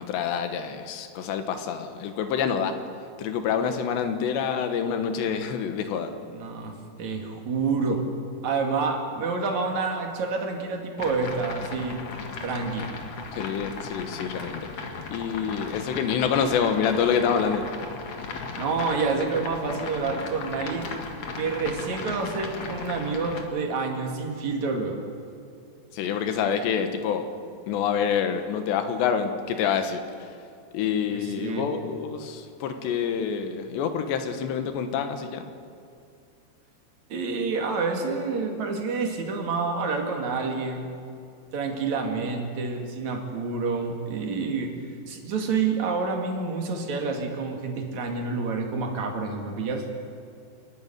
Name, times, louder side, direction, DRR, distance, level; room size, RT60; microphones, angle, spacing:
voice 1, 0.0-2.8 3.2-6.1 13.3-14.7 15.1-17.6 25.9-27.3 27.7-30.3 30.7-35.4, left 7 dB, 80° left, 8 dB, 3.5 m, -27 dB
voice 2, 6.3-8.0 8.4-12.0 12.4-12.9 18.6-20.9 21.4-25.0 31.1-31.7 37.1-40.9 41.5-44.7 45.1-49.8, right 4 dB, 50° right, 2 dB, 3.0 m, -28 dB
sound 1, 11.0-23.4, left 4 dB, 50° left, 2.3 m, -36 dB
27.5 x 11.0 x 9.9 m, 2.5 s
omnidirectional pair, 5.0 m